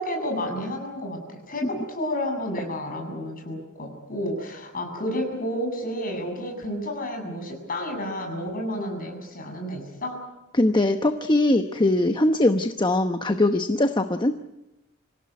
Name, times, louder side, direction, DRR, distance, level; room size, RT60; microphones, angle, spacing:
voice 1, 0.0-10.2, equal, 40° left, 3 dB, 7.4 m, -31 dB
voice 2, 10.5-14.3, left 1 dB, 20° left, 7 dB, 1.0 m, -21 dB
26.5 x 16.5 x 9.6 m, 0.95 s
head